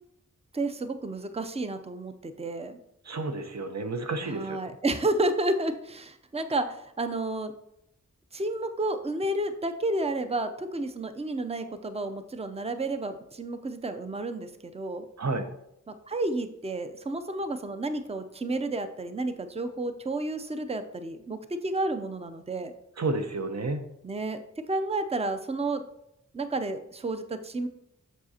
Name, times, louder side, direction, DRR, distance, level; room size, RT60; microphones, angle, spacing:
voice 1, 0.5-2.8 4.2-7.5 8.3-15.0 15.9-22.7 24.0-25.8 26.3-27.7, right 2 dB, 20° right, 9 dB, 0.6 m, -31 dB
voice 2, 3.1-4.6 15.2-15.5 23.0-23.8, right 3 dB, 55° right, 7 dB, 0.8 m, -30 dB
7.4 x 6.5 x 2.8 m, 0.79 s
cardioid pair, 45°, 32 cm